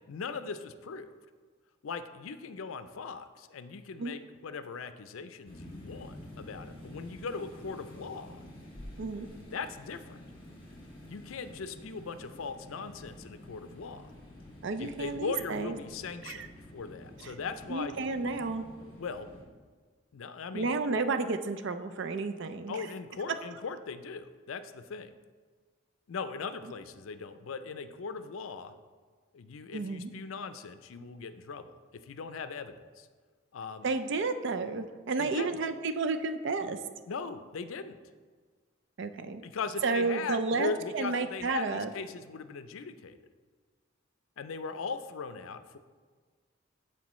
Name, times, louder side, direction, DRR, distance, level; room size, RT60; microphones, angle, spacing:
voice 1, 0.1-1.1 1.8-8.4 9.5-10.2 11.0-14.0 14.8-17.9 19.0-19.3 20.1-20.8 22.7-25.1 26.1-28.7 29.3-31.7 32.0-33.1 33.5-33.9 35.2-35.6 37.1-38.0 39.4-43.2 44.4-45.8, left 5 dB, 75° left, 11 dB, 0.4 m, -39 dB
sound 1, 5.4-19.4, left 1 dB, 25° left, 1.7 m, -49 dB
voice 2, 9.0-9.3 14.6-15.8 16.3-16.5 17.2-17.3 17.7-18.7 20.5-22.7 29.7-30.1 33.8-36.8 39.0-39.4 39.8-41.9, right 3 dB, 60° right, 9 dB, 0.4 m, -31 dB
13.0 x 4.4 x 3.1 m, 1.5 s
head